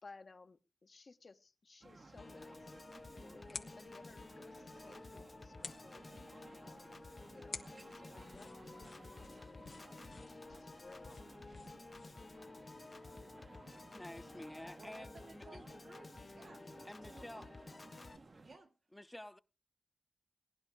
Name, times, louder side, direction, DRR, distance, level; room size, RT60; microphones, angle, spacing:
voice 1, 0.0-2.6 3.2-6.0 6.6-8.6 9.0-9.8 10.3-11.4, left 3 dB, 70° left, 1.3 m, -59 dB
sound 1, 1.8-18.6, right 3 dB, 65° right, 1.2 m, -58 dB
Piano / Organ, 2.2-18.2, left 3 dB, 55° left, 0.7 m, -53 dB
sound 2, 2.4-12.4, left 4 dB, 90° left, 1.0 m, -54 dB
voice 2, 13.9-15.8 16.8-17.5 18.9-19.4, left 1 dB, 15° left, 0.8 m, -50 dB
voice 3, 14.8-16.7 17.0-17.6 18.4-18.7, right 3 dB, 85° right, 2.7 m, -58 dB
18.5 x 11.0 x 4.9 m
cardioid pair, 55°, 0 cm